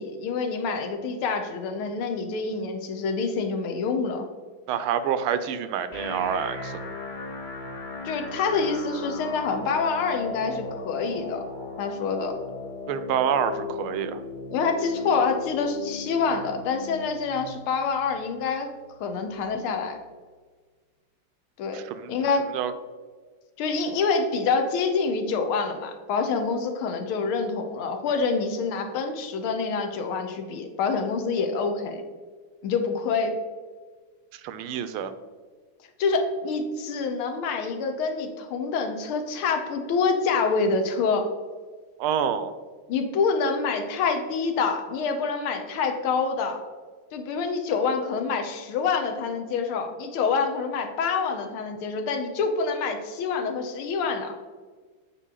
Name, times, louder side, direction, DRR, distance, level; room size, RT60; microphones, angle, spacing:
voice 1, 0.0-4.3 8.0-11.4 11.8-12.3 14.5-18.7 19.0-20.0 21.6-21.8 22.1-22.5 23.6-32.0 32.6-33.4 36.0-41.3 42.9-46.6 47.1-54.4, left 4 dB, 85° left, 5 dB, 1.7 m, -26 dB
voice 2, 4.7-6.8 12.9-14.2 21.7-22.1 22.5-22.7 34.3-35.1 42.0-42.6, right 8 dB, 85° right, 11 dB, 1.5 m, -27 dB
sound 1, 5.9-19.9, left 4 dB, 45° left, 0.6 m, -37 dB
8.4 x 4.6 x 3.8 m, 1.5 s
omnidirectional pair, 2.3 m